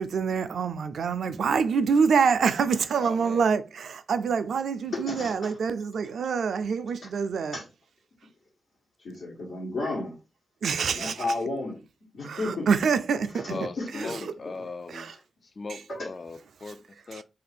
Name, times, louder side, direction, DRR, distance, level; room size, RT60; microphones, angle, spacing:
voice 1, 0.0-7.6 10.6-11.2 12.2-13.5 14.0-14.1 14.9-15.2 15.7-15.8 16.7-16.8 17.1-17.2, right 6 dB, 75° right, 0.3 m, -26 dB
voice 2, 2.9-3.5 13.5-15.1 15.6-17.2, left 3 dB, 50° left, 0.3 m, -39 dB
voice 3, 4.9-5.6 7.5-7.7 9.0-10.1 10.9-11.8 12.1-12.7 13.3-14.1 15.1-15.2 15.9-16.1, left 2 dB, 85° left, 1.3 m, -33 dB
2.7 x 2.5 x 4.1 m
supercardioid pair, 45°, 0 cm